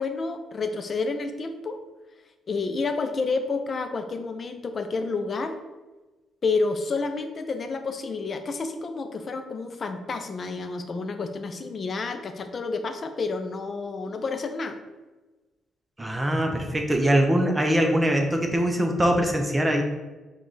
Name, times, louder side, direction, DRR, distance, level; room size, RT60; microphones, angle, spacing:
voice 1, 0.0-1.8 2.5-5.5 6.4-14.8, left 4 dB, 45° left, 7 dB, 0.5 m, -29 dB
voice 2, 16.0-19.8, equal, 15° right, 3 dB, 0.6 m, -22 dB
4.7 x 2.4 x 4.0 m, 1.2 s
cardioid pair, 90°, 0 cm